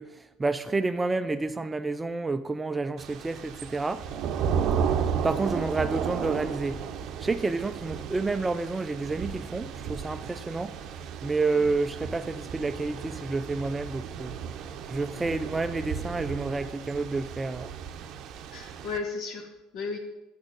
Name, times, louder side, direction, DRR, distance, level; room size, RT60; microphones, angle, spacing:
voice 1, 0.0-4.0 5.0-6.8 7.2-14.4 14.9-17.7, right 3 dB, 15° right, 11 dB, 0.4 m, -30 dB
Thunder / Rain, 3.0-19.0, right 7 dB, 55° right, 0.7 m, -34 dB
voice 2, 18.5-20.0, left 4 dB, 60° left, 4 dB, 1.3 m, -35 dB
6.3 x 6.2 x 6.3 m, 1.0 s
supercardioid pair, 85°, 0 cm